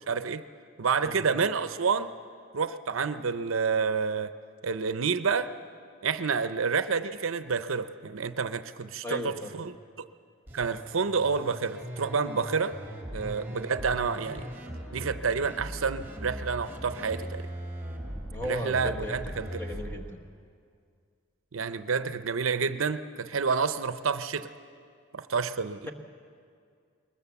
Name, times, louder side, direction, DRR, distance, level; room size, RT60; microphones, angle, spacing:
voice 1, 0.1-0.4 0.8-2.1 2.5-4.3 4.6-5.5 6.0-10.1 10.5-12.8 13.1-14.5 14.9-17.5 18.4-19.6 21.5-24.5 25.1-25.9, right 5 dB, 80° right, 12 dB, 0.7 m, -29 dB
voice 2, 9.0-9.5 12.9-13.0 18.3-19.2 19.6-20.2, left 1 dB, 10° left, 2 dB, 1.3 m, -36 dB
sound 1, 10.5-20.0, equal, 10° right, 2.4 m, -39 dB
21.0 x 20.5 x 7.1 m, 2.2 s
head